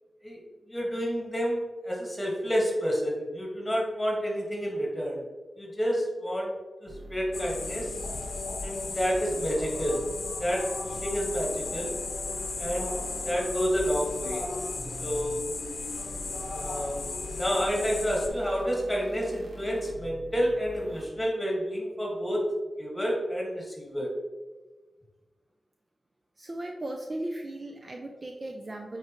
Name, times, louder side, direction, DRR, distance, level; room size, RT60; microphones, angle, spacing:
voice 1, 0.7-5.2 5.6-6.5 6.8-8.0 8.6-10.0 10.4-11.9 12.6-13.0 13.2-14.4 15.0-15.4 16.5-22.5 22.8-24.1, equal, 10° left, -3 dB, 1.6 m, -29 dB
sound 1, 6.9-21.1, right 1 dB, 55° right, 1.0 m, -44 dB
sound 2, 7.3-18.3, left 3 dB, 75° left, 0.7 m, -35 dB
voice 2, 26.4-29.0, right 1 dB, 30° right, 2 dB, 0.4 m, -37 dB
8.4 x 4.4 x 3.0 m, 1.2 s
wide cardioid pair, 165°, 0 cm